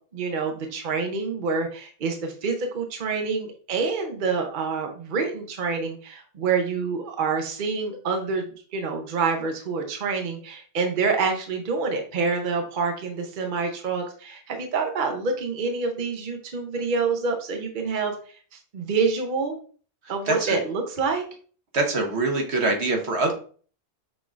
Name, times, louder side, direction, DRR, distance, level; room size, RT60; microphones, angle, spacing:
voice 1, 0.1-18.1 18.7-19.6 20.1-21.2, right 4 dB, 50° right, 4 dB, 0.9 m, -27 dB
voice 2, 20.3-20.6 21.7-23.3, right 2 dB, 75° right, 2 dB, 1.3 m, -24 dB
6.0 x 3.5 x 2.4 m, 0.42 s
omnidirectional pair, 1.1 m